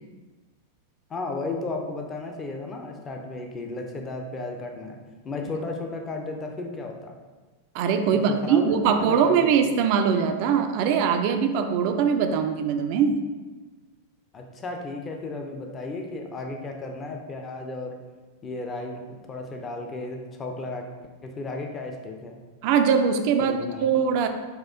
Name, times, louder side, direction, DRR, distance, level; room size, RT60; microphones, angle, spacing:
voice 1, 1.1-5.0 5.2-7.2 8.1-9.5 14.3-17.9 18.4-20.9 21.2-22.4 23.4-23.9, left 2 dB, 25° left, 3 dB, 0.5 m, -34 dB
voice 2, 7.7-13.2 22.6-24.3, right 7 dB, 45° right, 7 dB, 0.3 m, -22 dB
4.3 x 2.4 x 3.6 m, 1.3 s
figure-of-eight pair, 90°, 0 cm